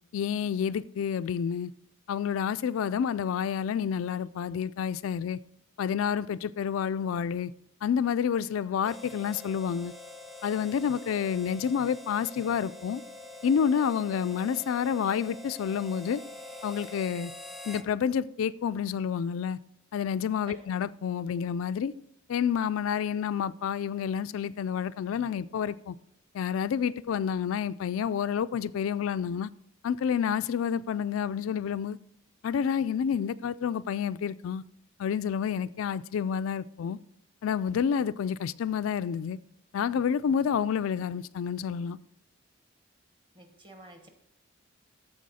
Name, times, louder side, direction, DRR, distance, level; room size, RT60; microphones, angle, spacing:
voice 1, 0.1-1.7 2.1-5.4 5.8-7.5 7.8-9.9 10.4-13.0 13.4-16.2 16.6-17.3 17.7-19.6 19.9-21.9 22.3-25.9 26.3-29.5 29.8-32.0 32.4-34.6 35.0-37.0 37.4-39.4 39.7-42.0, left 7 dB, 85° left, 0.3 m, -29 dB
Harmonica, 8.8-17.9, left 2 dB, ahead, 0.5 m, -45 dB
voice 2, 43.3-44.1, right 2 dB, 25° right, 1.3 m, -49 dB
13.5 x 4.6 x 4.2 m
head